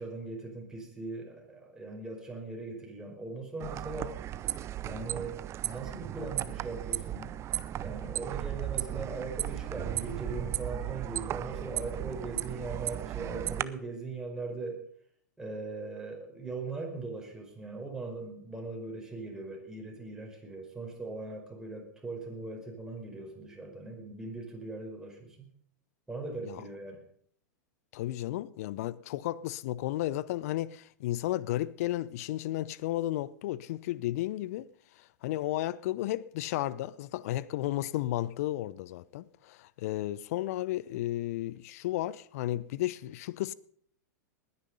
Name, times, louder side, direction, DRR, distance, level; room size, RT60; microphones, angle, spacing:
voice 1, 0.0-4.2 4.8-7.4 7.8-14.9 15.4-25.5 26.1-27.0, right 3 dB, 5° right, 5.1 m, -40 dB
sound 1, 3.6-13.6, right 12 dB, 30° right, 0.7 m, -35 dB
voice 2, 27.9-34.7 35.0-43.5, left 15 dB, 55° left, 0.7 m, -33 dB
20.0 x 9.8 x 5.5 m
figure-of-eight pair, 100°, 10 cm